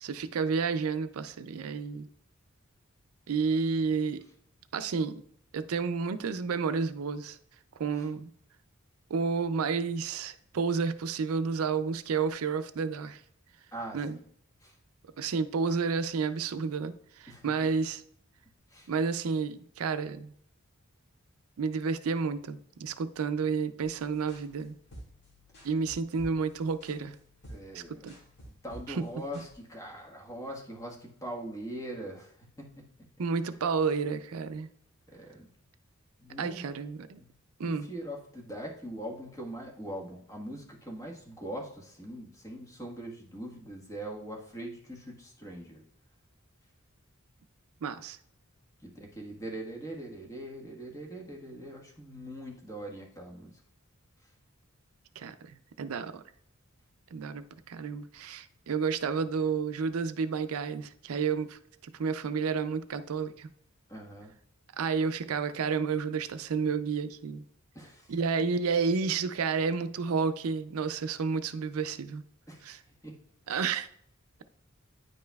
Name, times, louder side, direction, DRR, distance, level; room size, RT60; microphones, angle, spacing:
voice 1, 0.0-2.1 3.3-4.2 4.7-5.2 5.5-7.4 7.8-8.3 9.1-13.2 13.9-14.2 15.2-18.0 18.9-20.3 21.6-24.7 25.6-27.2 27.7-28.2 28.9-29.0 33.2-34.7 36.4-37.2 37.6-37.9 47.8-48.2 55.2-56.2 57.1-63.5 64.8-67.4 68.1-72.2 72.6-72.8 73.5-73.9, right 5 dB, 75° right, 11 dB, 0.4 m, -31 dB
voice 2, 13.7-14.2 14.6-14.7 17.3-17.7 18.7-18.9 27.5-28.1 28.4-32.9 33.2-33.3 35.1-35.5 36.2-36.7 37.2-37.3 37.6-45.8 48.8-53.6 63.9-64.3 67.7-68.1 72.5-72.7 73.0-73.2 73.5-73.7, right 1 dB, 15° left, -1 dB, 1.4 m, -42 dB
sound 1, 23.8-29.5, equal, 55° left, 2.0 m, -51 dB
9.7 x 5.3 x 2.3 m, 0.65 s
head